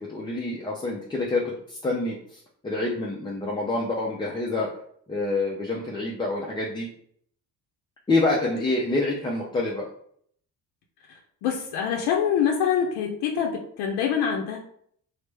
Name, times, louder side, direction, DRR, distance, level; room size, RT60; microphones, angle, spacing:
voice 1, 0.0-4.7 5.1-6.9 8.1-9.9, left 2 dB, 15° left, -2 dB, 0.3 m, -27 dB
voice 2, 11.1-14.6, left 8 dB, 90° left, 1 dB, 0.5 m, -25 dB
3.2 x 2.0 x 3.2 m, 0.64 s
cardioid pair, 115°, 38 cm